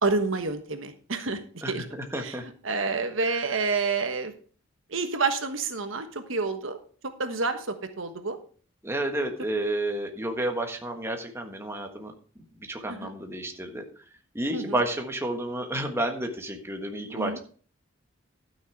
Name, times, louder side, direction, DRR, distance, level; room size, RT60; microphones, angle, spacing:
voice 1, 0.0-1.8 2.2-2.3 2.6-4.3 4.9-6.8 7.0-8.4 12.9-13.1 14.5-14.8 17.1-17.4, right 4 dB, 75° right, 8 dB, 1.3 m, -29 dB
voice 2, 1.6-2.4 3.3-3.4 8.8-13.8 14.3-17.4, right 1 dB, 10° right, 3 dB, 1.4 m, -31 dB
12.5 x 6.4 x 4.7 m, 0.42 s
head